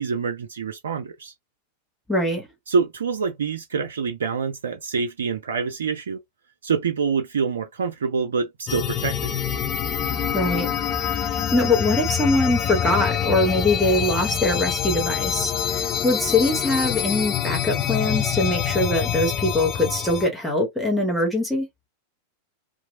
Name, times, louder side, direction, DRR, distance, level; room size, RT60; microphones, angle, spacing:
voice 1, 0.0-1.3 2.7-6.2 6.6-9.4, right 5 dB, 65° right, 0.4 m, -26 dB
voice 2, 2.1-2.5 10.3-21.7, left 2 dB, ahead, 1.1 m, -23 dB
sound 1, 8.7-20.3, left 9 dB, 35° left, 0.4 m, -26 dB
2.8 x 2.3 x 2.7 m
figure-of-eight pair, 90°, 0 cm